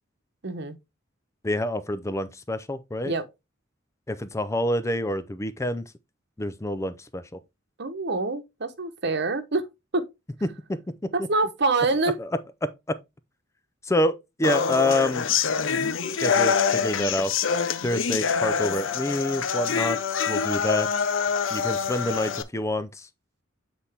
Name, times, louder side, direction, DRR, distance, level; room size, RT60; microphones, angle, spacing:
voice 1, 0.4-0.8 3.0-3.2 7.8-9.6 9.9-10.0 11.1-12.2, right 3 dB, 60° right, 1.0 m, -25 dB
voice 2, 1.4-3.1 4.1-5.8 6.4-7.4 10.4-10.8 12.2-12.3 12.6-13.0 13.8-15.3 16.2-17.3 17.8-20.9 21.5-23.1, left 1 dB, 15° left, 0.5 m, -27 dB
sound 1, 14.4-22.4, left 6 dB, 70° left, 0.7 m, -25 dB
7.9 x 4.2 x 3.4 m
head